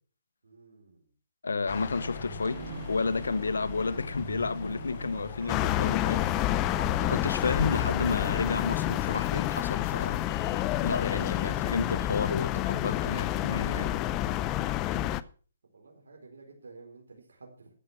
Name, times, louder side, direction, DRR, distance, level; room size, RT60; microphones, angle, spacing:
voice 1, 0.4-1.1 15.7-17.7, right 3 dB, 80° right, 4.4 m, -52 dB
voice 2, 1.4-2.6 2.9-6.3 7.1-10.2 10.8-14.0, left 4 dB, 85° left, 1.2 m, -31 dB
sound 1, 1.7-11.5, left 9 dB, 45° left, 0.8 m, -42 dB
sound 2, 1.7-8.3, right 6 dB, 40° right, 3.6 m, -44 dB
sound 3, 5.5-15.2, left 14 dB, 25° left, 0.6 m, -29 dB
13.5 x 8.5 x 6.0 m
hypercardioid pair, 150°, 0 cm